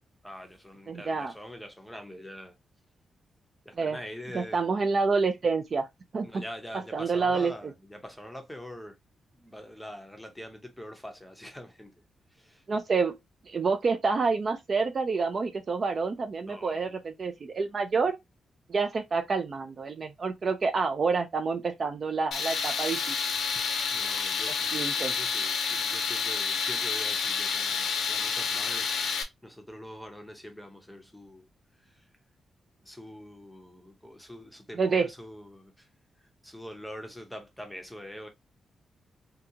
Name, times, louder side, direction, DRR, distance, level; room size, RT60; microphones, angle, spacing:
voice 1, 0.2-2.6 3.6-4.6 6.2-9.0 9.3-12.0 12.3-12.6 16.5-17.0 23.5-31.5 31.8-32.1 32.8-35.9 36.2-38.3, equal, 5° left, 0.6 m, -44 dB
voice 2, 0.9-1.3 3.8-4.0 4.3-5.9 6.1-6.3 6.9-7.5 12.7-13.2 13.5-18.2 18.7-23.2 24.7-25.1 34.8-35.1, right 4 dB, 35° right, 0.4 m, -28 dB
Tools, 22.3-29.2, left 5 dB, 75° left, 0.7 m, -29 dB
3.7 x 2.3 x 2.7 m
wide cardioid pair, 175°, 0 cm